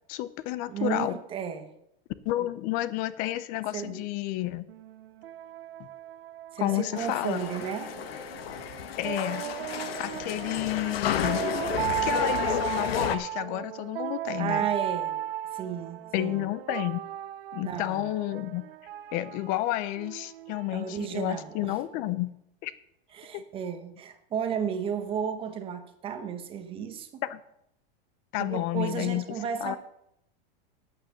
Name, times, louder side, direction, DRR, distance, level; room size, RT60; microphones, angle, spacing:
voice 1, 0.1-1.2 2.3-4.6 6.6-7.4 9.0-9.5 10.0-11.4 11.9-14.7 16.1-17.0 17.5-18.6 19.1-22.3 22.6-22.7 23.3-23.4 27.3-27.4 28.3-29.2 29.6-29.8, left 15 dB, 30° left, 15 dB, 0.5 m, -30 dB
voice 2, 0.7-1.7 2.4-2.5 3.7-4.0 6.5-7.9 14.3-15.2 15.5-16.4 17.6-18.1 20.7-21.8 23.1-27.2 28.4-29.8, right 7 dB, 20° right, 7 dB, 1.0 m, -33 dB
sound 1, 4.7-22.1, right 12 dB, 80° right, 0.7 m, -36 dB
sound 2, 6.9-13.2, left 9 dB, 90° left, 1.2 m, -32 dB
9.0 x 8.8 x 6.9 m, 0.78 s
supercardioid pair, 165°, 29 cm